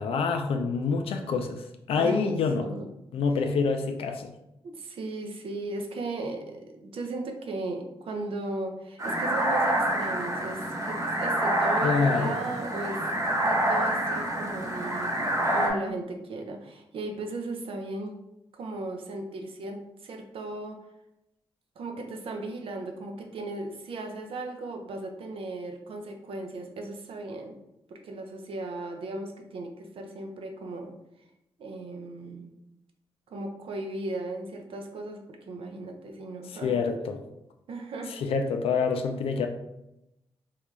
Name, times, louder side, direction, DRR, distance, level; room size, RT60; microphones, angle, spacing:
voice 1, 0.0-2.7 3.1-4.3 11.8-12.3 36.6-37.2 38.2-39.5, left 5 dB, 75° left, 5 dB, 0.4 m, -26 dB
voice 2, 1.9-2.9 4.6-13.0 13.4-18.2 18.5-20.8 21.8-27.6 27.9-30.9 31.6-32.5 33.3-36.8 37.7-38.2, right 2 dB, 70° right, 3 dB, 0.6 m, -36 dB
sound 1, 9.0-15.7, right 1 dB, 35° right, 1.1 m, -27 dB
3.8 x 2.2 x 3.2 m, 0.86 s
supercardioid pair, 55°, 10 cm